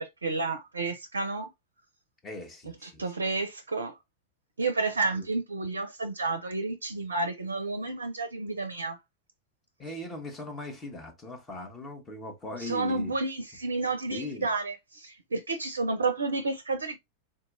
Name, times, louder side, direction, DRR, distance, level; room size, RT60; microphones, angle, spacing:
voice 1, 0.0-1.5 2.8-3.9 4.6-9.0 12.6-17.0, right 3 dB, 75° right, 0.4 m, -31 dB
voice 2, 2.2-3.1 5.1-5.3 9.8-13.1 14.1-14.5, left 2 dB, 20° left, 1.1 m, -39 dB
3.7 x 2.8 x 2.5 m
figure-of-eight pair, 90°, 0 cm